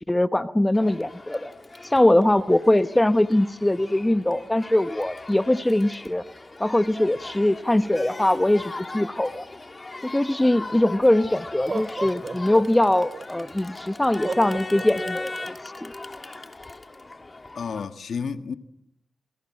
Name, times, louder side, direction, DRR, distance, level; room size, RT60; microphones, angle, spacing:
voice 1, 0.0-1.5 1.8-6.2 6.6-9.4 10.0-15.3 15.8-15.9, left 1 dB, 15° left, 1.0 m, -22 dB
Crowd, 0.7-17.9, left 2 dB, 30° left, 2.6 m, -39 dB
Laughter, 10.8-10.9 11.5-13.2 14.2-15.5, right 4 dB, 50° right, 2.3 m, -33 dB
voice 2, 17.5-18.5, left 6 dB, 75° left, 1.7 m, -31 dB
28.5 x 23.0 x 7.6 m
cardioid pair, 60°, 0 cm